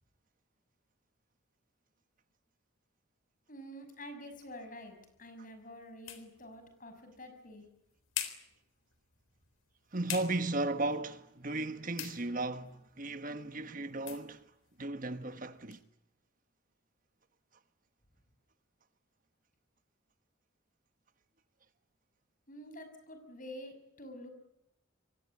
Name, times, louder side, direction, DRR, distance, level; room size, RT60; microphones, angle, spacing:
voice 1, 3.5-7.6 22.5-24.3, equal, 40° left, 6.4 m, -48 dB
sound 1, 4.3-15.8, left 10 dB, 80° left, 3.9 m, -48 dB
voice 2, 9.9-14.4 14.8-15.8, right 2 dB, 40° right, 1.4 m, -35 dB
27.0 x 23.5 x 8.5 m
head